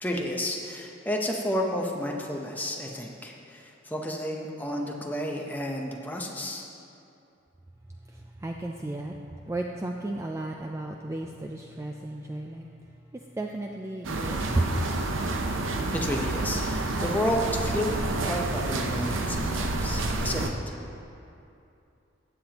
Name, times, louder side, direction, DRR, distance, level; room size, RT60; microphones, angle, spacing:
voice 1, 0.0-6.7 15.9-20.7, left 1 dB, 10° left, 0 dB, 0.7 m, -31 dB
voice 2, 8.1-9.1 9.5-12.7 13.1-14.9, right 1 dB, 15° right, 1 dB, 0.3 m, -33 dB
sound 1, 14.0-20.5, right 2 dB, 85° right, 0.7 m, -29 dB
15.0 x 8.7 x 2.9 m, 2.7 s
head